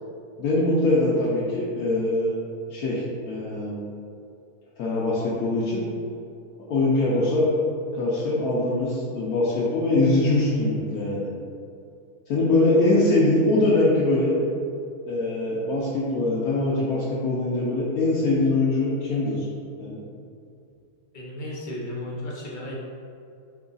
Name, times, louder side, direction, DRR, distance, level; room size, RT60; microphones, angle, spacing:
voice 1, 0.4-2.3 2.7-3.8 4.8-5.8 6.7-7.5 7.9-11.3 12.3-14.3 15.0-19.5 19.8-20.0, left 2 dB, 80° left, -7 dB, 1.1 m, -23 dB
voice 2, 21.1-22.7, left 1 dB, 40° left, -5 dB, 0.8 m, -34 dB
4.6 x 2.3 x 3.8 m, 2.5 s
omnidirectional pair, 1.5 m